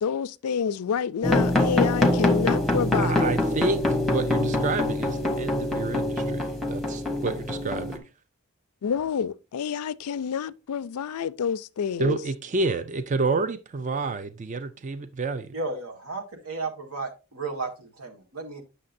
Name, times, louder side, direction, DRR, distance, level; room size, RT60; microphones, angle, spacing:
voice 1, 0.0-3.4 8.8-12.2, left 7 dB, 85° left, 0.4 m, -28 dB
sound 1, 1.2-8.0, left 1 dB, ahead, 0.8 m, -24 dB
voice 2, 3.0-8.0 12.0-15.5, right 3 dB, 35° right, 0.4 m, -29 dB
voice 3, 15.5-18.6, right 3 dB, 80° right, 1.6 m, -34 dB
8.5 x 6.5 x 2.6 m
head